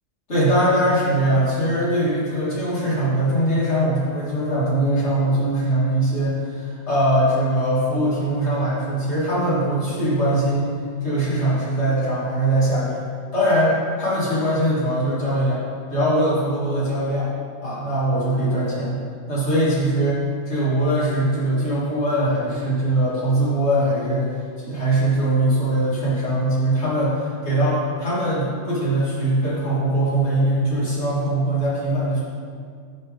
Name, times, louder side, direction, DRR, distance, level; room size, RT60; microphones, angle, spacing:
voice 1, 0.3-10.7 11.0-13.1 13.3-15.6 15.9-17.3 17.6-24.3 24.6-32.2, right 1 dB, 65° left, -9 dB, 2.3 m, -21 dB
10.5 x 3.7 x 3.6 m, 2.1 s
omnidirectional pair, 1.2 m